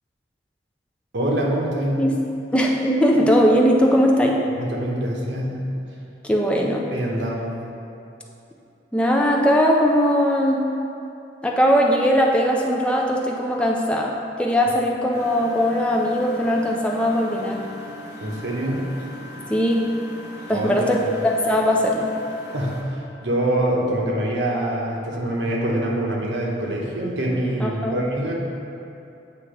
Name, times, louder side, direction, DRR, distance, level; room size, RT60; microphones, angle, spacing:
voice 1, 1.1-2.0 4.6-5.6 6.9-7.5 18.2-18.8 20.5-21.1 22.5-28.3, right 1 dB, 80° right, -2 dB, 1.0 m, -25 dB
voice 2, 2.5-4.4 6.2-6.9 8.9-10.7 11.4-17.6 19.5-20.0 20.5-22.1 27.6-28.0, equal, 5° left, -1 dB, 0.4 m, -20 dB
Engine, 15.1-22.8, left 1 dB, 60° left, 1.0 m, -39 dB
8.3 x 2.8 x 5.0 m, 2.7 s
head